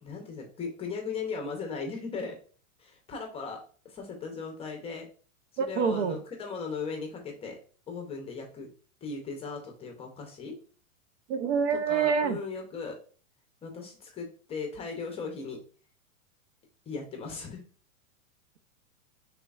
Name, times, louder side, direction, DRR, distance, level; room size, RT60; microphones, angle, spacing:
voice 1, 0.0-2.4 2.8-5.1 5.6-7.6 7.9-8.7 9.0-10.6 11.7-13.0 13.6-15.6 16.9-17.6, left 4 dB, 15° left, 0.6 m, -37 dB
voice 2, 5.6-6.2 11.3-12.4, right 6 dB, 55° right, 0.6 m, -26 dB
5.0 x 3.3 x 2.3 m
hypercardioid pair, 140°, 43 cm